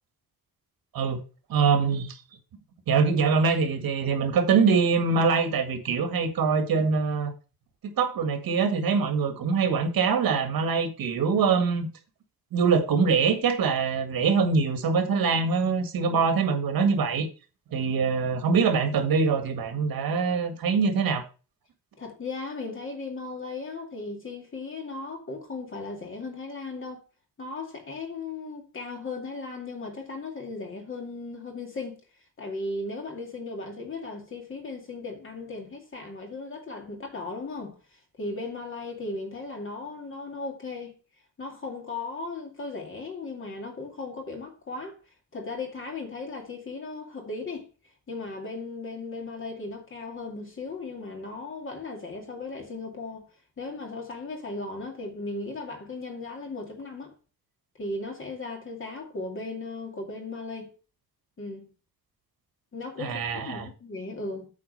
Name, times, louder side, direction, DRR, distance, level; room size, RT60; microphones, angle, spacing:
voice 1, 1.5-2.2 2.9-7.3 7.8-11.9 12.5-17.3 17.7-21.2 63.0-63.7, right 5 dB, 70° right, 1.8 m, -24 dB
voice 2, 22.0-27.0 27.4-32.0 32.4-41.0 41.4-45.0 45.3-47.7 48.1-53.3 53.6-57.1 57.8-60.7 61.4-61.7 62.7-64.5, left 3 dB, 35° left, 2.4 m, -36 dB
8.6 x 4.3 x 6.6 m
wide cardioid pair, 160°, 36 cm